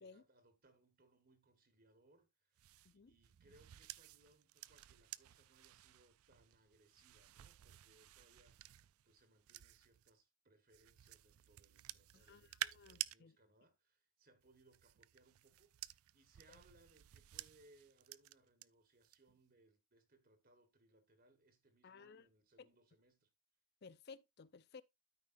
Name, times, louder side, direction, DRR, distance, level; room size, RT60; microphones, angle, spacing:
voice 1, 0.0-23.3, right 2 dB, 45° right, 1.4 m, -71 dB
sound 1, 2.6-10.1 10.7-13.2 14.4-18.7 19.0-19.4, right 14 dB, 85° right, 0.4 m, -52 dB
voice 2, 12.1-13.4 16.5-16.6 21.8-22.3 22.6-22.7 23.8-24.8, left 5 dB, 50° left, 0.5 m, -58 dB
13.0 x 5.2 x 2.6 m
head